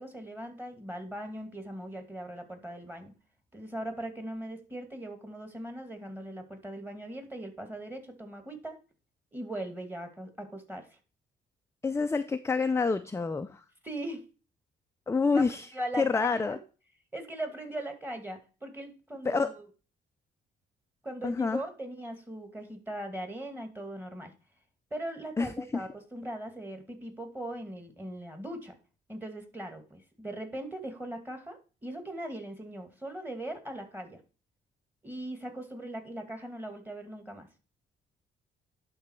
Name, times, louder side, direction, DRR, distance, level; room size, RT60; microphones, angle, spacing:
voice 1, 0.0-3.1 3.5-8.8 9.3-11.0 13.8-14.3 15.7-16.6 17.1-19.6 21.0-24.3 24.9-28.7 29.1-34.2 35.0-37.5, right 1 dB, 10° right, 6 dB, 2.3 m, -39 dB
voice 2, 11.8-13.6 15.1-15.7 16.0-16.6 19.2-19.5 21.2-21.6 25.4-25.5, left 4 dB, 15° left, 9 dB, 0.5 m, -27 dB
11.5 x 4.0 x 4.5 m, 0.34 s
cardioid pair, 90°, 20 cm